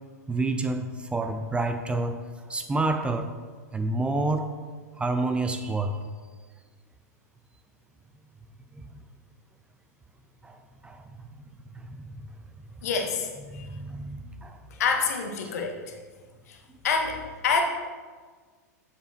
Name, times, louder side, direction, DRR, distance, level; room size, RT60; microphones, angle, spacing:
voice 1, 0.3-3.3 3.7-4.5 5.0-6.0 8.7-8.9 10.4-11.2 11.7-12.2 13.0-14.6 14.9-15.1 15.4-15.5, right 2 dB, 10° right, 7 dB, 0.5 m, -29 dB
voice 2, 12.8-13.7 14.8-15.9 16.5-16.6 16.8-17.6, left 5 dB, 60° left, 3 dB, 1.2 m, -27 dB
8.2 x 7.1 x 3.0 m, 1.5 s
figure-of-eight pair, 95°, 9 cm